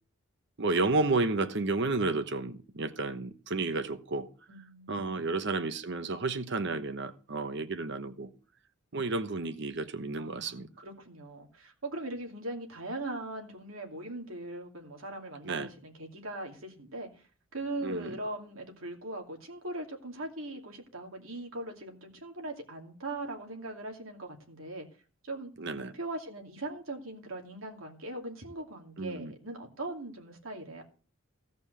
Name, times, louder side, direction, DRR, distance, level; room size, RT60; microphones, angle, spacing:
voice 1, 0.6-4.3 4.9-8.3 8.9-10.7 15.4-15.7 17.8-18.1 25.6-25.9 29.0-29.3, right 3 dB, 60° right, 1.0 m, -31 dB
voice 2, 4.5-5.4 10.2-17.2 17.5-24.9 25.2-30.8, right 2 dB, 90° right, 2.6 m, -40 dB
16.0 x 5.4 x 6.7 m
head